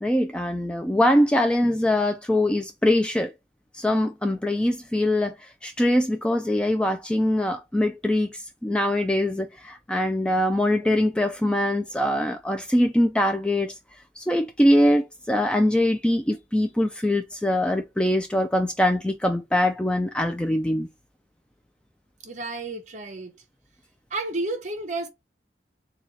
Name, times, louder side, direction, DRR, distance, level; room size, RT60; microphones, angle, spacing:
voice 1, 0.0-3.3 3.7-5.4 5.6-13.7 14.2-20.9, left 1 dB, 5° left, 0.3 m, -23 dB
voice 2, 22.2-23.3 24.1-25.1, right 2 dB, 40° right, 0.8 m, -31 dB
4.1 x 2.3 x 3.1 m
head